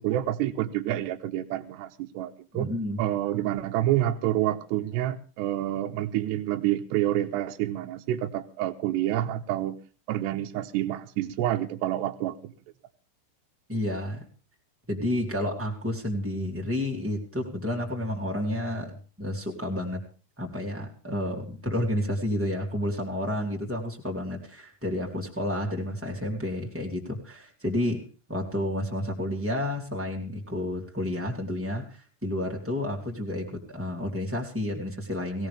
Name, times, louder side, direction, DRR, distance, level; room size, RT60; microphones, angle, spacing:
voice 1, 0.0-2.7 3.0-9.8 10.1-12.5, right 13 dB, 80° right, 5 dB, 2.6 m, -28 dB
voice 2, 2.5-3.0 13.7-14.2 14.9-20.1 20.4-28.0 28.3-35.5, left 1 dB, 10° right, -2 dB, 0.6 m, -30 dB
18.0 x 17.5 x 3.4 m, 0.36 s
omnidirectional pair, 5.9 m